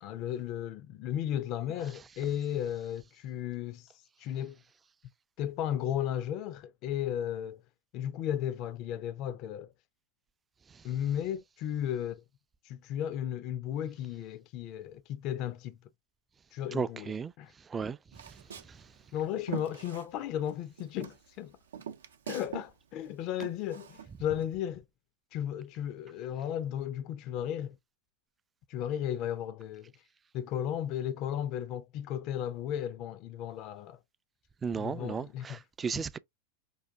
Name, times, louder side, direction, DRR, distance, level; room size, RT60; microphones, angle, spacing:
voice 1, 0.0-4.6 5.4-7.6 7.9-9.7 10.8-12.2 12.6-15.8 16.5-17.1 17.4-17.5 19.1-21.6 22.3-24.8 25.3-27.8 28.7-29.9 30.3-34.0 34.8-35.6 35.9-36.0, left 10 dB, 45° left, 0.5 m, -35 dB
voice 2, 16.7-17.3 17.6-18.0 18.2-18.9 34.6-36.2, right 6 dB, 20° right, 0.4 m, -35 dB
Walk footsteps, 18.1-20.5 20.8-22.7 23.0-24.5, right 8 dB, 75° right, 0.6 m, -43 dB
5.4 x 2.5 x 3.5 m
figure-of-eight pair, 90°, 0 cm